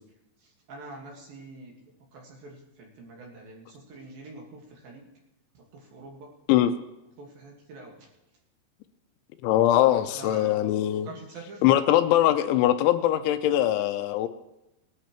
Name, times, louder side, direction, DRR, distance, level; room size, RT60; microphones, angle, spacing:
voice 1, 0.4-1.8 2.1-5.1 5.5-6.3 7.2-8.1 9.9-10.7 11.0-11.6, right 3 dB, 60° right, 0 dB, 2.9 m, -45 dB
voice 2, 9.4-11.1 11.6-14.3, left 13 dB, 85° left, 10 dB, 3.0 m, -22 dB
20.0 x 11.5 x 3.0 m, 0.91 s
omnidirectional pair, 5.5 m